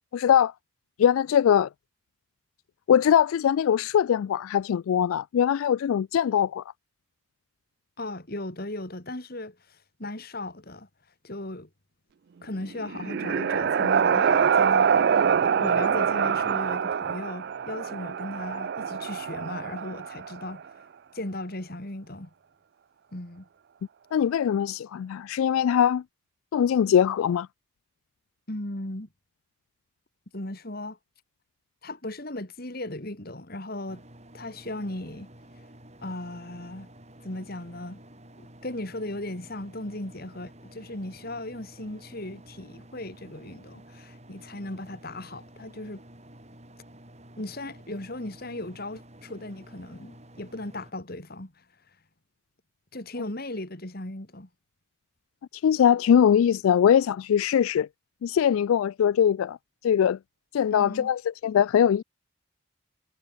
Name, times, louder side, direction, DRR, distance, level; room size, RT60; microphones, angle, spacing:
voice 1, 0.1-0.5 1.0-1.7 2.9-6.6 24.1-26.0 26.5-27.5 55.5-57.9 58.2-59.6 59.8-60.2 60.5-62.0, left 8 dB, 75° left, 0.3 m, -22 dB
voice 2, 8.0-10.9 11.2-11.7 12.4-20.7 21.1-22.3 23.1-23.5 28.5-29.1 30.3-31.0 31.8-34.0 34.3-35.3 36.0-36.9 37.2-38.0 38.4-46.0 47.4-51.6 52.9-54.5 60.7-61.1, left 1 dB, 45° left, 2.4 m, -37 dB
sound 1, 12.6-20.5, right 7 dB, 50° right, 0.3 m, -25 dB
sound 2, 33.9-50.9, right 1 dB, 30° right, 5.3 m, -50 dB
head